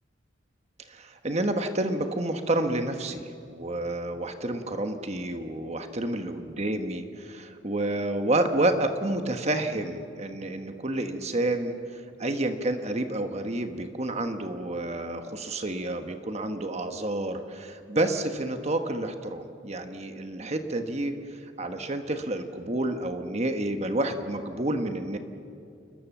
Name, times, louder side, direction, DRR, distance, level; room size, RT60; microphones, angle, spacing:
voice 1, 0.9-25.2, right 1 dB, 35° right, 6 dB, 1.3 m, -29 dB
29.0 x 22.0 x 7.3 m, 2.4 s
head